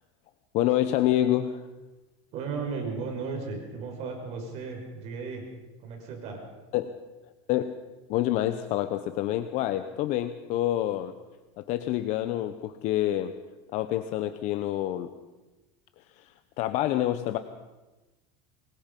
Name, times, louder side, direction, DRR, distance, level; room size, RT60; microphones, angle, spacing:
voice 1, 0.5-1.7 6.7-7.0 7.5-7.8 8.1-11.1 11.6-13.3 13.7-15.1 16.1-17.4, left 13 dB, 45° left, 10 dB, 1.0 m, -27 dB
voice 2, 2.3-5.5 5.8-6.4, right 4 dB, 45° right, 2 dB, 5.5 m, -35 dB
25.0 x 21.5 x 5.4 m, 1.1 s
cardioid pair, 160°, 16 cm